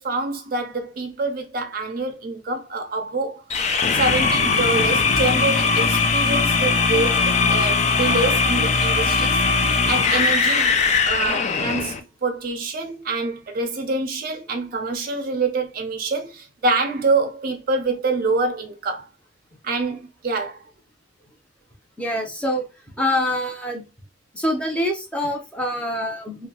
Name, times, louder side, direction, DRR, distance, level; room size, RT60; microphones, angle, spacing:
voice 1, 0.0-10.8 11.0-12.0 12.2-19.1 19.6-20.6, right 3 dB, 50° right, 0.5 m, -26 dB
sound 1, 3.5-12.0, left 4 dB, 40° left, 0.4 m, -20 dB
voice 2, 22.0-23.9 24.3-26.5, left 1 dB, 5° left, 0.7 m, -25 dB
2.7 x 2.3 x 2.7 m
head